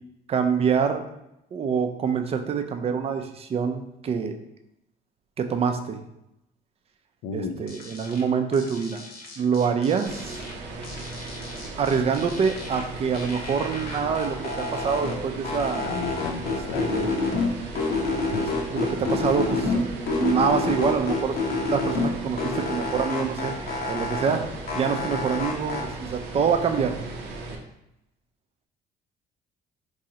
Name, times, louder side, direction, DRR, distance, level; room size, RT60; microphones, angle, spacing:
voice 1, 0.3-1.1 1.5-4.3 5.4-6.0 7.3-9.0 9.4-10.4 11.8-15.9 16.5-17.1 18.4-21.3 21.7-23.5 23.9-27.0, right 6 dB, 35° right, 6 dB, 0.4 m, -26 dB
voice 2, 7.2-7.5 15.8-17.0 18.2-18.6, left 5 dB, 85° left, 7 dB, 0.4 m, -34 dB
sound 1, 7.7-8.2 8.5-10.5 10.8-12.8 13.1-15.2 15.4-17.5 17.8-19.8 20.1-22.1 22.4-24.4 24.7-25.8, left 3 dB, 65° left, 0.9 m, -29 dB
sound 2, 10.1-27.6, right 3 dB, 90° right, 0.6 m, -37 dB
3.7 x 3.1 x 2.8 m, 0.85 s
cardioid pair, 110°, 17 cm